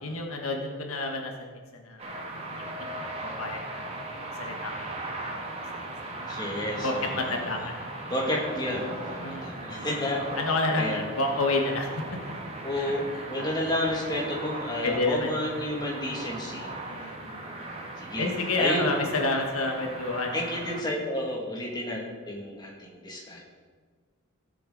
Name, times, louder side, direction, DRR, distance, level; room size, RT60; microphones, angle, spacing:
voice 1, 0.0-3.1 3.4-3.9 4.4-4.7 5.1-5.2 6.8-7.9 9.2-9.9 10.4-12.0 12.7-13.6 14.8-15.4 16.9-17.6 18.2-20.3, left 2 dB, 80° left, 2 dB, 1.4 m, -30 dB
sound 1, 2.0-20.8, right 2 dB, 30° right, 1.6 m, -38 dB
voice 2, 6.3-7.4 8.1-10.2 10.8-11.0 12.6-16.7 17.4-17.6 18.0-18.3 18.6-18.8 20.3-22.0 22.3-23.4, left 1 dB, 20° left, -3 dB, 2.2 m, -31 dB
16.5 x 7.7 x 4.0 m, 1.5 s
head